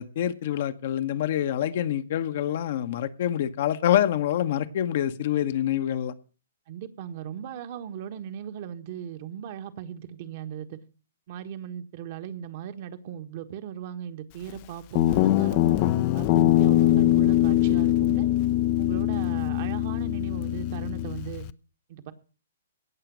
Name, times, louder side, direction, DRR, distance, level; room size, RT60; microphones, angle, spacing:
voice 1, 0.0-6.1, left 11 dB, 55° left, 10 dB, 1.1 m, -26 dB
voice 2, 6.7-10.8 11.3-18.3 18.8-21.5 21.9-22.1, right 9 dB, 45° right, 8 dB, 1.5 m, -38 dB
Guitar, 14.9-21.5, left 14 dB, 40° left, 0.6 m, -22 dB
17.5 x 6.8 x 6.2 m, 0.37 s
hypercardioid pair, 125°, 0 cm